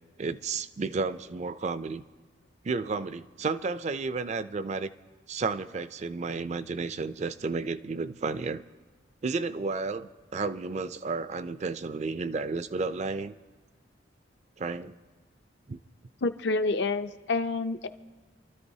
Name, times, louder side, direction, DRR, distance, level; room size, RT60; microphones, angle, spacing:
voice 1, 0.2-2.0 2.6-4.9 5.3-8.6 9.2-13.3 14.6-14.9 15.7-15.8, right 4 dB, 35° right, 13 dB, 0.4 m, -32 dB
voice 2, 16.2-17.9, left 3 dB, 65° left, 9 dB, 0.6 m, -28 dB
27.0 x 13.0 x 2.7 m, 1.4 s
head